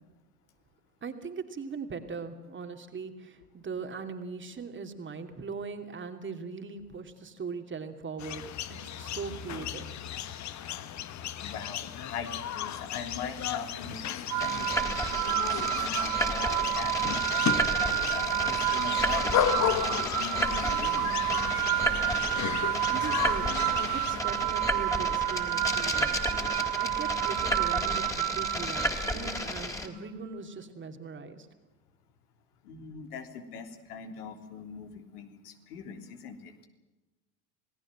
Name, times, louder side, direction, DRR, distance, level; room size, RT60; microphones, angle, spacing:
voice 1, 1.0-8.5 8.8-10.0 22.9-23.5 23.9-31.5, right 5 dB, 25° right, 6 dB, 2.9 m, -40 dB
sound 1, 8.2-24.2, left 10 dB, 35° left, 1.5 m, -34 dB
voice 2, 11.4-17.5 18.1-21.9 32.6-36.7, left 6 dB, 70° left, 5 dB, 3.3 m, -41 dB
sound 2, 14.3-29.4, right 16 dB, 40° right, 1.1 m, -30 dB
sound 3, 14.4-29.9, equal, 5° left, 3.7 m, -33 dB
27.5 x 18.5 x 7.5 m, 1.1 s
figure-of-eight pair, 80°, 48 cm